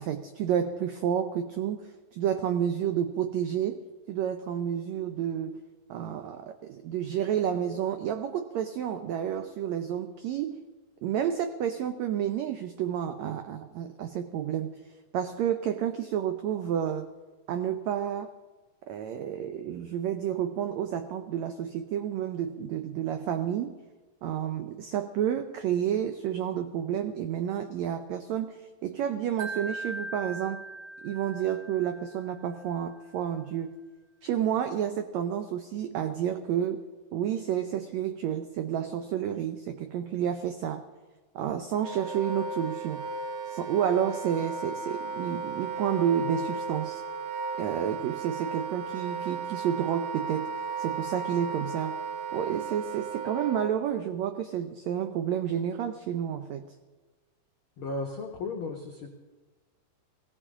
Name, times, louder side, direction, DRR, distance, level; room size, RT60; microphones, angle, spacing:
voice 1, 0.0-3.8 4.1-5.6 5.9-10.6 11.0-14.7 15.1-17.1 17.5-18.3 18.9-23.7 24.2-30.6 31.0-33.7 34.2-36.8 37.1-40.8 41.3-43.1 43.5-47.0 47.6-50.5 50.8-52.0 52.3-56.7, right 9 dB, 85° right, 8 dB, 1.5 m, -30 dB
Wind chime, 29.4-32.5, right 3 dB, 45° right, 4.3 m, -40 dB
Wind instrument woodwind instrument, 41.7-53.7, right 4 dB, 70° right, 1.8 m, -35 dB
voice 2, 57.8-59.1, left 3 dB, 80° left, 1 dB, 1.2 m, -35 dB
20.0 x 16.5 x 3.7 m, 1.3 s
omnidirectional pair, 3.9 m